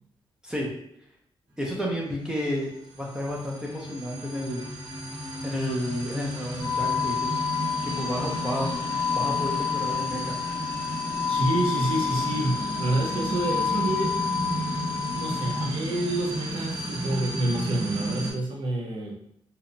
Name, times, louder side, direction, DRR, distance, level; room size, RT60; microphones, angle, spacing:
voice 1, 1.6-2.7 3.0-4.6 5.4-7.4 7.8-8.7 9.1-10.4, equal, 10° right, -3 dB, 0.5 m, -31 dB
sound 1, 2.6-18.3, right 1 dB, 30° right, 1.1 m, -33 dB
sound 2, 6.6-15.6, left 7 dB, 75° left, 0.8 m, -29 dB
voice 2, 11.3-14.2 15.1-19.1, right 2 dB, 65° right, 0 dB, 0.6 m, -28 dB
2.7 x 2.0 x 2.5 m, 0.72 s
wide cardioid pair, 125°, 9 cm